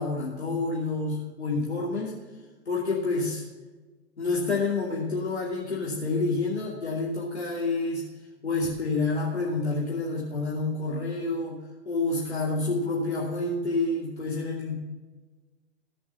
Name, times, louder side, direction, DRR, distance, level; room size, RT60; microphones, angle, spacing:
voice 1, 0.0-2.1 2.7-3.4 4.2-8.1 8.4-11.6 11.8-14.8, left 3 dB, 90° left, -5 dB, 2.8 m, -28 dB
15.5 x 6.4 x 5.5 m, 1.2 s
hypercardioid pair, 110°, 33 cm